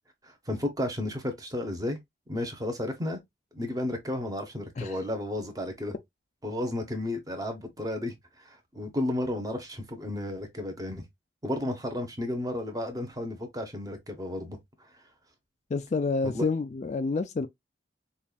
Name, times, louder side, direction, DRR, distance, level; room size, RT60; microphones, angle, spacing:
voice 1, 0.2-2.0 2.3-3.2 3.5-5.9 6.4-11.0 11.4-14.9 16.3-16.4, left 1 dB, 20° right, 0.9 m, -33 dB
voice 2, 15.7-17.5, left 4 dB, 40° left, 0.3 m, -28 dB
5.3 x 2.4 x 2.3 m
head